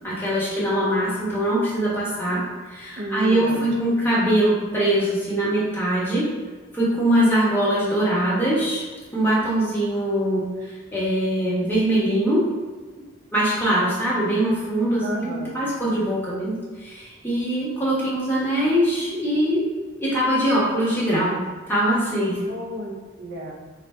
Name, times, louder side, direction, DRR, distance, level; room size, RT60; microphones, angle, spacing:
voice 1, 0.0-2.4 2.7-6.3 6.7-8.8 9.1-12.4 13.3-19.6 20.0-21.4 21.7-22.4, right 1 dB, 10° left, -8 dB, 1.1 m, -22 dB
voice 2, 3.0-3.6 15.0-15.6 22.5-23.5, equal, 60° right, 0 dB, 0.6 m, -31 dB
4.0 x 2.4 x 4.2 m, 1.4 s
head